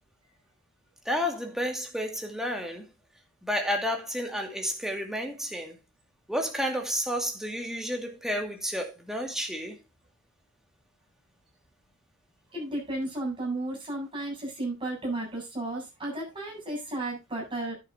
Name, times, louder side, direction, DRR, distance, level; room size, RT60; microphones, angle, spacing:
voice 1, 1.1-2.9 3.4-5.7 6.3-9.8, equal, ahead, 2.2 m, -31 dB
voice 2, 12.5-17.7, right 2 dB, 25° right, 7.7 m, -33 dB
11.0 x 10.0 x 2.7 m
head